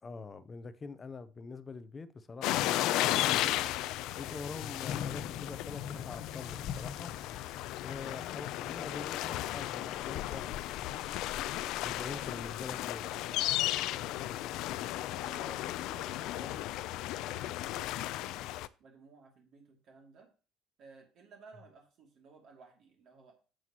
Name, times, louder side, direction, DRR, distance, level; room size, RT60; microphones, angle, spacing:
voice 1, 0.0-3.6 4.2-7.1 7.8-10.7 11.8-13.0, left 4 dB, 20° left, 0.6 m, -45 dB
sound 1, 2.4-18.7, left 15 dB, 65° left, 0.5 m, -35 dB
Thunder / Rain, 4.8-14.5, left 8 dB, 50° left, 0.9 m, -46 dB
voice 2, 12.0-14.5 15.1-18.5 18.8-20.3 20.8-23.3, right 4 dB, 50° right, 2.5 m, -56 dB
11.0 x 7.8 x 2.9 m
cardioid pair, 175°, 0 cm